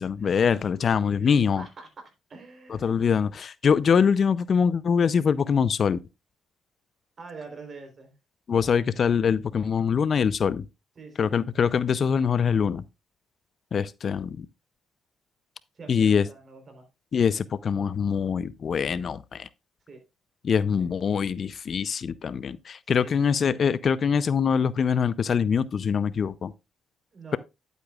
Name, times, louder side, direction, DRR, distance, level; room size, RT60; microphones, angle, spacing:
voice 1, 0.0-1.6 2.8-6.0 8.5-10.7 11.2-12.8 13.7-14.5 15.9-16.3 17.1-19.5 20.4-26.5, left 6 dB, 50° left, 0.5 m, -24 dB
voice 2, 1.2-1.9 2.3-3.0 7.2-8.1 11.0-11.3 15.8-16.9 19.9-20.0 20.8-20.9 22.9-23.4 27.1-27.4, right 4 dB, 45° right, 3.7 m, -45 dB
10.5 x 8.1 x 2.4 m
cardioid pair, 90°, 0 cm